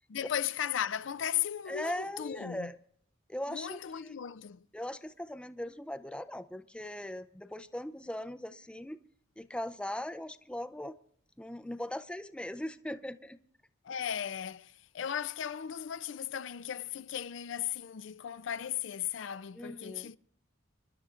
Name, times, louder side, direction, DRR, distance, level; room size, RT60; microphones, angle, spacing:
voice 1, 0.1-2.7 3.5-4.7 13.8-20.2, left 9 dB, 75° left, 0.4 m, -36 dB
voice 2, 1.7-2.8 3.3-4.1 4.7-9.0 9.4-11.0 11.4-13.4 19.5-20.1, left 1 dB, 5° left, 0.5 m, -39 dB
27.5 x 11.5 x 2.5 m
head